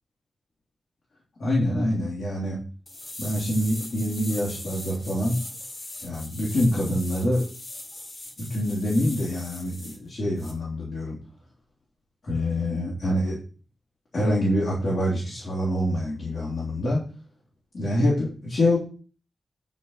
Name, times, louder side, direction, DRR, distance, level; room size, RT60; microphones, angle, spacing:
voice 1, 1.4-2.6 3.2-5.4 6.0-7.4 8.4-11.2 12.2-13.4 14.1-17.0 17.7-18.8, left 1 dB, 60° left, -5 dB, 3.4 m, -25 dB
sound 1, 2.9-10.0 10.4-10.5, left 2 dB, 35° left, 1.7 m, -40 dB
9.3 x 5.4 x 5.6 m, 0.38 s
wide cardioid pair, 170°, 0 cm